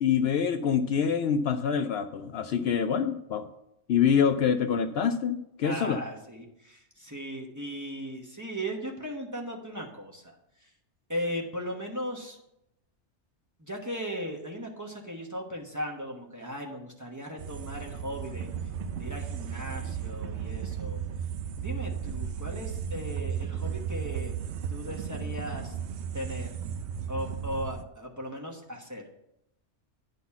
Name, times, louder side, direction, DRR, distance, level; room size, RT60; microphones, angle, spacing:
voice 1, 0.0-3.4 3.9-6.0, left 7 dB, 65° left, 8 dB, 0.7 m, -26 dB
voice 2, 5.6-10.3 10.6-10.7 11.1-12.4 13.6-18.5 18.9-21.0 21.6-24.3 24.7-25.7 26.1-26.6 27.1-29.0, equal, 15° right, 0 dB, 1.2 m, -37 dB
sound 1, 17.4-27.8, right 7 dB, 70° right, 0.9 m, -35 dB
10.0 x 4.1 x 7.0 m, 0.82 s
omnidirectional pair, 1.2 m